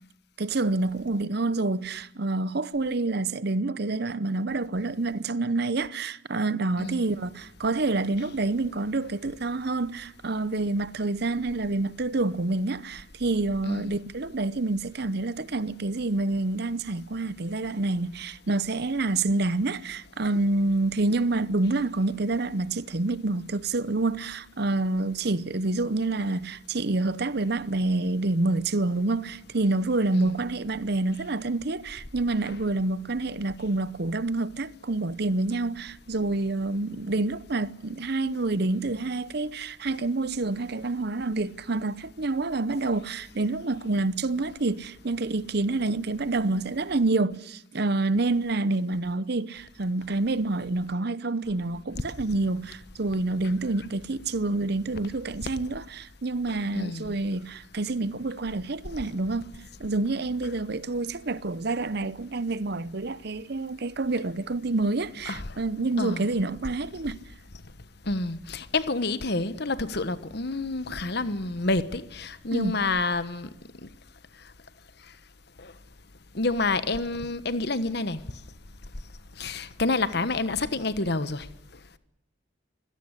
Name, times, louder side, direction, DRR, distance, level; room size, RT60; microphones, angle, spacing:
voice 1, 0.4-59.5 59.8-67.2 72.5-72.8, right 2 dB, 55° right, 0.8 m, -28 dB
voice 2, 56.7-57.2 65.3-65.4 66.0-66.3 68.1-73.5 73.8-73.9 75.6-75.7 76.3-78.2 79.4-81.5, left 3 dB, 55° left, 1.3 m, -28 dB
25.0 x 17.0 x 9.9 m
head